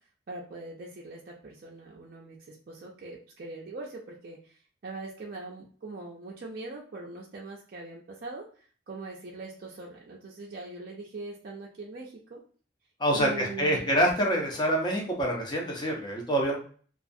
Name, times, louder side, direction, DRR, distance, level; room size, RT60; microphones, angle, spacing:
voice 1, 0.3-4.4 4.8-8.4 8.9-12.4 13.1-13.9, right 3 dB, 50° right, -3 dB, 0.4 m, -41 dB
voice 2, 13.0-16.6, equal, 25° left, 0 dB, 0.6 m, -26 dB
2.4 x 2.3 x 2.6 m, 0.43 s
head